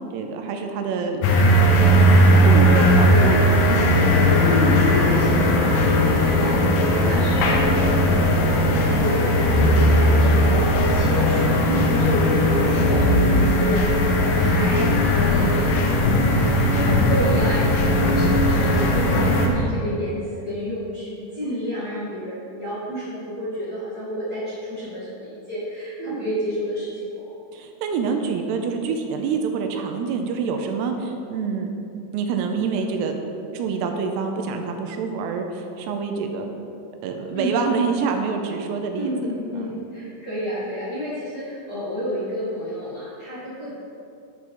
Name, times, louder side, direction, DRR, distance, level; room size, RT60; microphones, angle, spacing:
voice 1, 0.1-1.7 2.0-3.9 11.7-11.9 26.0-26.2 27.5-31.7 32.1-33.2 33.5-36.5 37.0-39.1 39.5-39.8, right 5 dB, 85° right, 4 dB, 2.8 m, -27 dB
sound 1, 1.2-19.5, equal, 70° left, 2.1 m, -18 dB
voice 2, 4.4-15.9 16.4-27.3 37.3-37.6 38.9-43.7, equal, 35° left, -12 dB, 1.7 m, -30 dB
10.5 x 5.5 x 4.7 m, 2.7 s
omnidirectional pair, 4.8 m